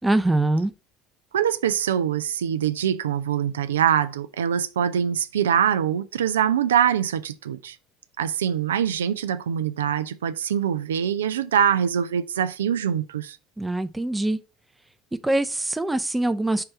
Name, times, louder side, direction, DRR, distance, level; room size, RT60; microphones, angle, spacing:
voice 1, 0.0-0.7 13.6-14.4 15.2-16.6, right 2 dB, 10° right, 0.5 m, -23 dB
voice 2, 1.3-7.8 8.2-13.4, right 9 dB, 70° right, 0.3 m, -24 dB
5.6 x 3.2 x 5.1 m
figure-of-eight pair, 65°, 0 cm